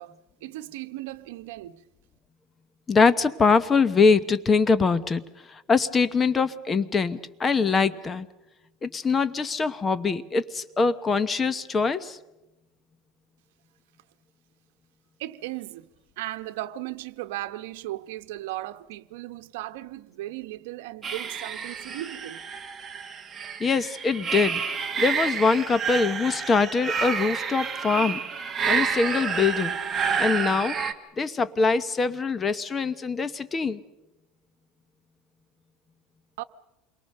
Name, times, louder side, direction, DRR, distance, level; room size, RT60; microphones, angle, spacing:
voice 1, 0.0-1.8 15.2-22.4 36.4-36.5, right 16 dB, 85° right, 1.0 m, -37 dB
voice 2, 2.9-5.2 5.5-8.3 8.8-12.2 23.6-24.6 25.0-28.2 28.7-29.8 30.2-30.8 31.2-33.8, left 4 dB, 20° left, 1.0 m, -23 dB
sound 1, 21.0-30.9, right 6 dB, 20° right, 1.5 m, -29 dB
28.0 x 22.5 x 6.6 m
cardioid pair, 155°, 0 cm